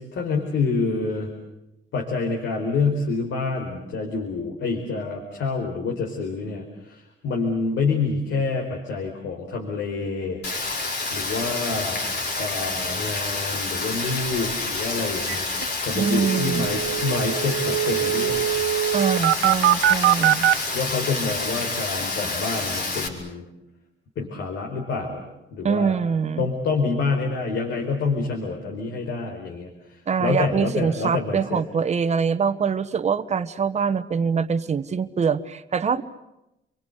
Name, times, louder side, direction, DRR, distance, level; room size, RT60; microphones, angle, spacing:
voice 1, 0.0-1.3 1.9-10.4 11.1-12.0 12.4-18.5 20.7-23.4 24.2-25.2 25.5-26.0 26.4-31.6, left 4 dB, 70° left, 1 dB, 4.9 m, -27 dB
Rain, 10.4-23.1, left 3 dB, 55° left, 5.4 m, -28 dB
sound 1, 15.3-15.4 15.6-15.7 16.0-20.6, right 12 dB, 75° right, 1.0 m, -22 dB
voice 2, 15.9-16.7 18.9-20.5 25.6-26.5 30.1-36.0, right 6 dB, 35° right, 10 dB, 1.3 m, -24 dB
30.0 x 23.5 x 8.3 m, 0.89 s
cardioid pair, 135°, 20 cm